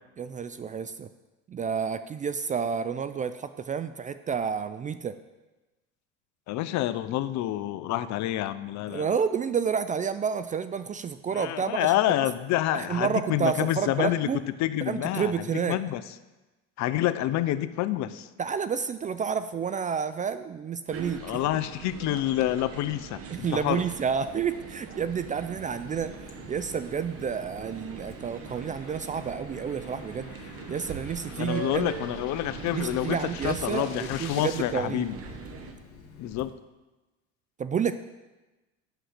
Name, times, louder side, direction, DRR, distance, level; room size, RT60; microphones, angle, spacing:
voice 1, 0.2-1.1 1.5-5.2 8.9-11.9 12.7-14.4 14.9-15.8 18.4-21.4 23.3-26.1 26.5-30.3 30.7-31.9 32.7-35.1 37.6-37.9, right 6 dB, 25° right, 12 dB, 0.3 m, -30 dB
voice 2, 6.5-9.1 11.3-14.3 14.6-16.0 16.8-18.3 21.2-23.8 31.4-35.2 36.2-36.5, left 13 dB, 55° left, 14 dB, 0.6 m, -28 dB
sound 1, 20.9-35.7, right 6 dB, 40° right, 1.2 m, -41 dB
Water tap faucet, 25.7-36.4, left 4 dB, 40° left, 2.0 m, -50 dB
sound 2, 25.8-34.6, left 7 dB, 75° left, 1.2 m, -49 dB
7.9 x 5.7 x 6.6 m, 1.1 s
supercardioid pair, 90°, 35 cm